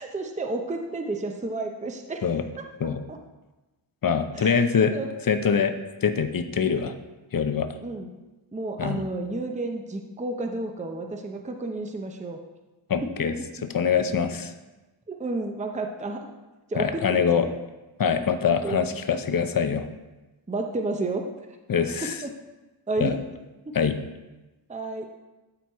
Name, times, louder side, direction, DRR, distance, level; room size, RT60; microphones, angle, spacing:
voice 1, 0.0-2.2 2.6-2.7 3.1-3.2 4.3-4.5 4.9-5.1 7.8-8.1 8.5-12.4 13.0-13.1 13.4-13.7 15.1-16.3 16.7-17.5 18.6-18.8 20.5-21.2 22.0-22.3 22.9-23.2 23.8-23.9 24.7-25.1, right 2 dB, 15° right, 4 dB, 0.7 m, -31 dB
voice 2, 4.0-4.9 5.3-5.7 6.0-6.9 7.3-7.7 8.8-9.0 12.9-13.3 13.7-14.5 16.8-17.5 18.0-19.9 21.7-22.1 23.0-23.2 23.7-23.9, left 6 dB, 45° left, 9 dB, 0.7 m, -23 dB
12.5 x 4.6 x 4.6 m, 1.1 s
wide cardioid pair, 120°, 48 cm